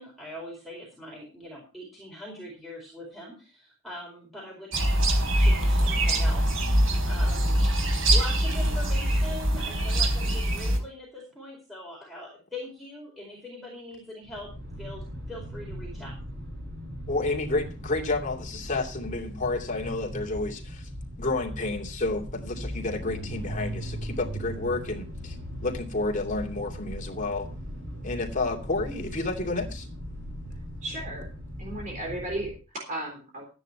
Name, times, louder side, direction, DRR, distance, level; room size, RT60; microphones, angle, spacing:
voice 1, 0.0-5.0 5.4-7.6 8.1-14.5 14.8-16.1, left 1 dB, ahead, 4.5 m, -42 dB
sound 1, 4.7-10.8, right 1 dB, 85° right, 4.0 m, -23 dB
sound 2, 14.3-32.6, equal, 65° right, 7.5 m, -38 dB
voice 2, 17.1-20.9 21.1-25.4 25.6-27.5 28.0-29.9, left 2 dB, 40° left, 2.6 m, -30 dB
voice 3, 30.8-31.3 31.6-33.5, right 1 dB, 40° right, 3.7 m, -35 dB
13.5 x 9.8 x 4.6 m
head